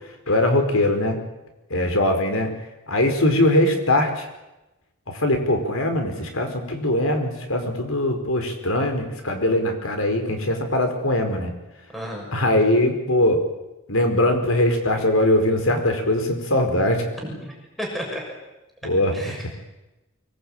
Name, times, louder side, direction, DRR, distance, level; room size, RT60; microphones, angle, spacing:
voice 1, 0.3-1.2 1.7-2.5 2.9-4.3 5.1-11.5 12.3-13.4 13.9-17.0 18.8-19.5, left 1 dB, 80° left, 5 dB, 5.0 m, -21 dB
voice 2, 11.9-12.3 17.2-18.2 19.1-19.5, equal, ahead, -1 dB, 6.6 m, -33 dB
24.5 x 21.0 x 9.0 m, 1.0 s
head